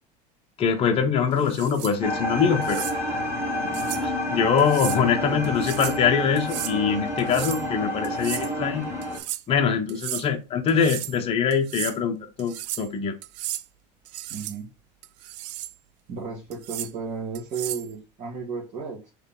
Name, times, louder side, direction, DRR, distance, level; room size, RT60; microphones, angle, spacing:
voice 1, 0.6-2.8 4.0-8.8 9.5-13.1, left 6 dB, 30° left, 0.8 m, -23 dB
sound 1, 1.4-1.9 2.6-3.0 3.7-4.0 4.6-5.0 5.4-6.0 6.4-6.7 7.2-7.7 8.0-8.5 9.0-9.4 9.9-10.3 10.7-11.2 11.5-12.0 12.4-12.9 13.2-13.6 14.0-14.6 15.0-15.7 16.5-16.9 17.3-17.9, right 15 dB, 80° right, 0.4 m, -34 dB
sound 2, 2.0-9.2, left 1 dB, 10° right, 1.5 m, -29 dB
voice 2, 5.2-5.6 14.3-14.7 16.1-19.1, right 5 dB, 35° right, 1.5 m, -34 dB
4.1 x 3.2 x 3.7 m
supercardioid pair, 130°, 21 cm